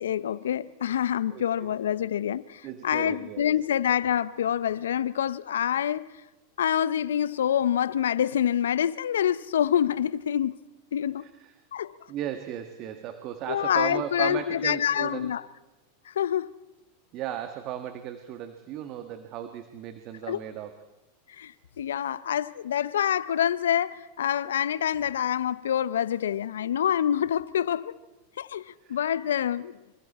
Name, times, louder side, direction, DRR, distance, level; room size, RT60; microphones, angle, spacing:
voice 1, 0.0-6.0 6.6-10.6 10.9-11.2 11.7-11.9 13.5-15.4 16.1-16.5 20.3-20.4 21.4-28.0 28.4-29.7, left 9 dB, 80° left, 0.8 m, -26 dB
voice 2, 1.3-1.7 2.6-3.5 11.2-11.5 12.1-15.3 17.1-20.7 28.8-29.0, right 10 dB, 45° right, 1.6 m, -36 dB
26.5 x 25.5 x 4.3 m
hypercardioid pair, 105°, 0 cm